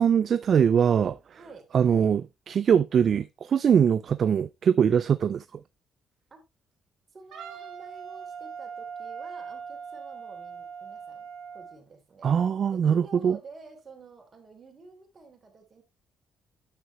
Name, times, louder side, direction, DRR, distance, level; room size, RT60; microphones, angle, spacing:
voice 1, 0.0-1.2 1.7-2.2 2.5-5.4 12.2-13.4, right 8 dB, 55° right, 0.4 m, -22 dB
voice 2, 1.4-2.1 6.3-6.4 7.1-12.3 12.7-15.8, right 3 dB, 40° right, 3.3 m, -49 dB
Wind instrument woodwind instrument, 7.3-11.8, right 6 dB, 80° right, 2.2 m, -40 dB
9.9 x 6.7 x 3.0 m
cardioid pair, 90°, 0 cm